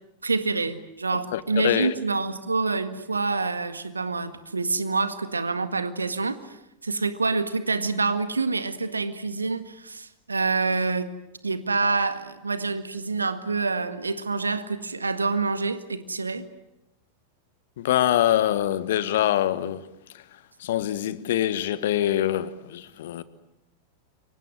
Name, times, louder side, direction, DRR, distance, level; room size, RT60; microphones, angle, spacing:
voice 1, 0.2-6.4 6.8-11.1 11.4-16.5, right 3 dB, 80° right, 1.7 m, -27 dB
voice 2, 1.3-1.9 17.8-19.8 20.6-23.2, left 12 dB, 55° left, 1.5 m, -24 dB
29.0 x 24.0 x 7.8 m
figure-of-eight pair, 90°, 0 cm